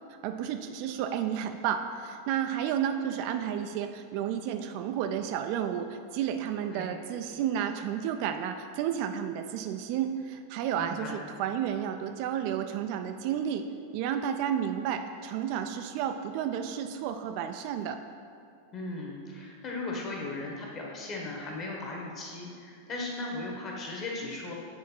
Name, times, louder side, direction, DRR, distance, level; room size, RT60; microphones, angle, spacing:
voice 1, 0.2-13.7 13.9-18.0, right 9 dB, 45° right, 7 dB, 0.3 m, -31 dB
voice 2, 10.8-11.2 18.7-24.5, left 2 dB, 30° left, -1 dB, 1.3 m, -37 dB
8.6 x 3.6 x 4.3 m, 2.3 s
figure-of-eight pair, 90°, 0 cm